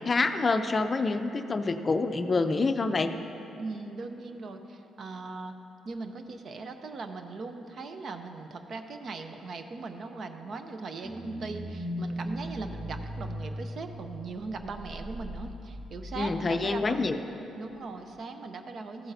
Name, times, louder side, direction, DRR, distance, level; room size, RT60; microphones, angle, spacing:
voice 1, 0.1-3.1 16.2-17.2, left 3 dB, 35° left, 8 dB, 0.4 m, -27 dB
voice 2, 3.6-5.5 5.8-17.2 17.5-19.1, right 3 dB, 55° right, 7 dB, 0.6 m, -39 dB
sound 1, 11.0-16.7 17.0-17.1, equal, 15° right, 1.0 m, -38 dB
14.5 x 7.8 x 2.7 m, 2.9 s
cardioid pair, 90°, 0 cm